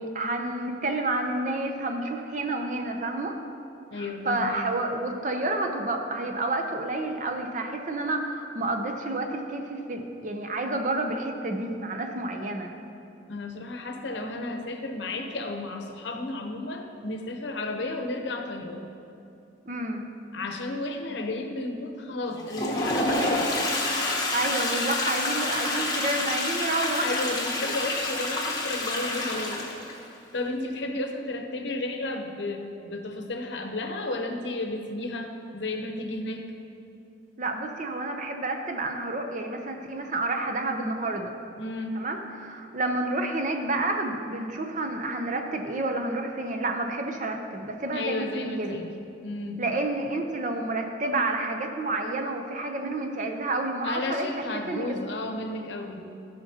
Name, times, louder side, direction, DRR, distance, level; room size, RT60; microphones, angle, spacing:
voice 1, 0.0-3.4 3.9-12.7 19.7-20.1 24.3-27.3 27.6-27.7 37.4-41.3 42.0-48.8 49.6-54.3 54.7-55.0, right 2 dB, 40° right, 4 dB, 0.6 m, -29 dB
voice 2, 3.9-4.6 13.3-18.9 20.3-23.6 27.0-29.6 29.9-30.0 30.3-36.4 41.6-42.0 47.9-48.9 49.2-49.6 53.8-56.1, left 2 dB, 70° left, 4 dB, 0.8 m, -33 dB
Toilet flush, 22.3-30.0, left 2 dB, 20° left, 0.9 m, -28 dB
13.0 x 5.8 x 2.8 m, 2.8 s
head